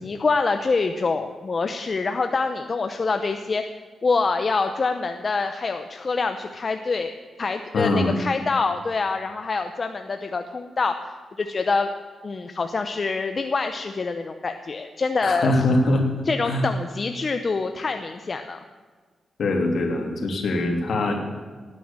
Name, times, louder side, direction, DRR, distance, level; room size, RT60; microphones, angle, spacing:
voice 1, 0.0-3.6 4.0-7.1 7.4-11.9 12.2-15.6 16.2-18.6, left 4 dB, 35° left, 7 dB, 0.7 m, -25 dB
voice 2, 7.7-8.1 15.2-16.1 16.4-16.6 19.4-21.2, left 2 dB, 60° left, 2 dB, 3.0 m, -22 dB
18.0 x 9.7 x 7.3 m, 1.5 s
wide cardioid pair, 125°, 0 cm